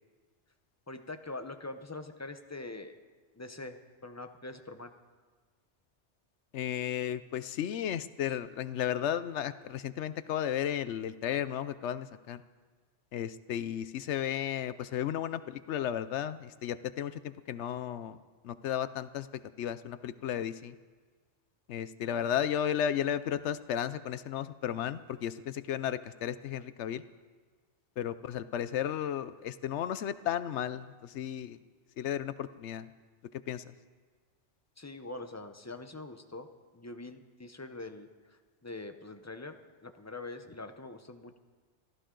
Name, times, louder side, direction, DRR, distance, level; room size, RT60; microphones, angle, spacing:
voice 1, 0.9-3.0 3.4-4.9 34.8-36.5 36.7-39.6 39.8-41.4, left 2 dB, 15° left, 7 dB, 0.7 m, -44 dB
voice 2, 6.5-12.4 13.1-18.2 18.4-19.3 19.6-20.7 21.7-27.0 28.0-31.6 32.0-32.9 33.5-33.7, left 10 dB, 80° left, 14 dB, 0.9 m, -34 dB
23.5 x 14.5 x 3.8 m, 1.5 s
omnidirectional pair, 1.2 m